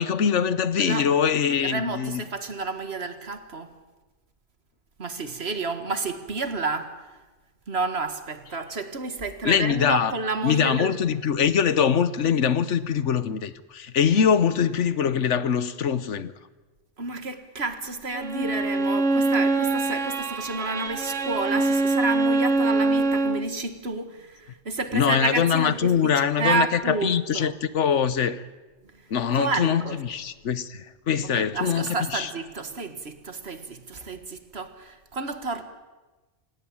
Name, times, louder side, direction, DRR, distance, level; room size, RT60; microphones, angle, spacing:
voice 1, 0.0-2.2 9.4-10.1 10.4-16.3 24.9-28.4 29.1-32.3, left 7 dB, 80° left, 1.3 m, -23 dB
voice 2, 0.8-1.1 1.6-3.7 5.0-6.9 7.7-11.0 17.0-27.6 28.9-29.0 29.3-30.1 31.2-35.6, right 3 dB, 60° right, 2.0 m, -30 dB
Bowed string instrument, 18.1-23.5, right 3 dB, 80° right, 1.7 m, -24 dB
27.5 x 17.0 x 8.8 m
omnidirectional pair, 1.2 m